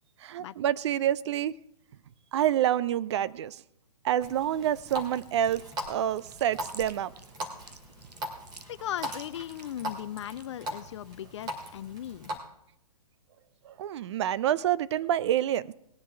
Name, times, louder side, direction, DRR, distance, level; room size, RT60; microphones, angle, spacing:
voice 1, 0.2-1.5 2.3-3.6 4.0-7.1 13.7-15.7, right 11 dB, 45° right, 0.5 m, -27 dB
Water tap faucet, 4.2-12.4, right 1 dB, 20° right, 2.3 m, -40 dB
Chewing mastication, 4.9-10.5, right 3 dB, 90° right, 1.0 m, -50 dB
voice 2, 8.7-12.3, left 11 dB, 45° left, 0.4 m, -38 dB
19.0 x 10.0 x 3.4 m
figure-of-eight pair, 125°, 20 cm